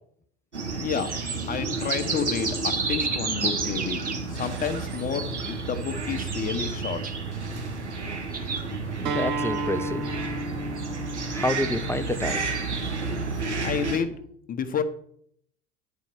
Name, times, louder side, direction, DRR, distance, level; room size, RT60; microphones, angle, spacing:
sound 1, 0.5-14.0, right 3 dB, 85° right, 1.7 m, -30 dB
voice 1, 0.8-1.1 1.5-4.0 4.3-7.0 13.6-14.1 14.5-14.8, left 7 dB, 25° left, 9 dB, 1.1 m, -30 dB
sound 2, 0.9-2.2 2.5-4.2 4.7-5.0 5.3-7.1 8.3-8.7, right 5 dB, 25° right, 1.6 m, -37 dB
voice 2, 9.0-10.1 11.3-12.4, left 2 dB, 10° left, 11 dB, 0.5 m, -28 dB
Acoustic guitar, 9.0-14.2, right 2 dB, 50° right, 1.4 m, -34 dB
10.5 x 4.4 x 6.2 m, 0.67 s
figure-of-eight pair, 75°, 34 cm